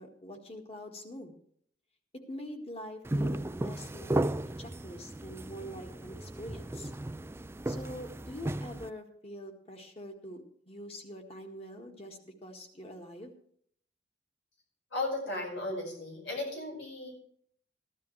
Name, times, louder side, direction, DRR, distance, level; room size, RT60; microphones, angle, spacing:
voice 1, 0.0-1.4 2.1-4.2 4.6-6.9 7.7-13.3, equal, 35° left, 3 dB, 1.8 m, -45 dB
sound 1, 3.0-8.9, right 1 dB, 15° right, 0.3 m, -35 dB
voice 2, 14.9-17.1, left 2 dB, 90° left, -1 dB, 5.4 m, -35 dB
14.5 x 12.0 x 3.3 m, 0.64 s
head